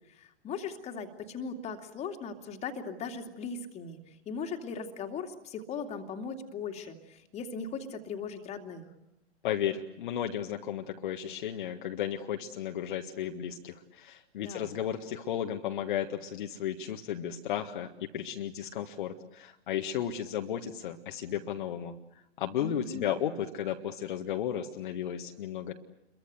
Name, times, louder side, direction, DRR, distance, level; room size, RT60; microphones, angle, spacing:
voice 1, 0.1-4.0 4.3-8.8 14.4-14.7 22.6-23.3, left 5 dB, 20° left, 5 dB, 2.6 m, -39 dB
voice 2, 9.4-22.0 22.4-25.7, left 10 dB, 45° left, 4 dB, 1.7 m, -34 dB
28.5 x 23.0 x 8.0 m, 0.89 s
figure-of-eight pair, 115°, 34 cm